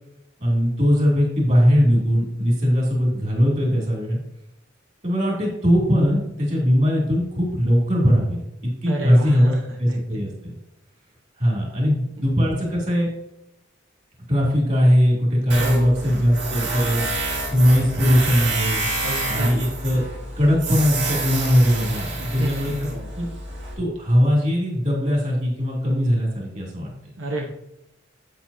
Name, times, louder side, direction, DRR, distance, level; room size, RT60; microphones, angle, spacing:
voice 1, 0.4-4.2 5.0-9.5 9.8-10.3 11.4-13.1 14.3-17.1 17.5-18.9 19.3-20.0 20.4-22.7 23.1-23.2 23.8-26.9, equal, 35° right, -2 dB, 2.8 m, -20 dB
voice 2, 8.8-9.6 9.8-10.2 12.5-12.7 15.6-16.2 19.0-19.5 22.2-23.1 27.2-27.5, right 1 dB, 85° right, 0 dB, 1.2 m, -31 dB
Tools, 15.5-23.7, right 3 dB, 65° right, 2.2 m, -28 dB
8.6 x 7.6 x 2.8 m, 0.83 s
head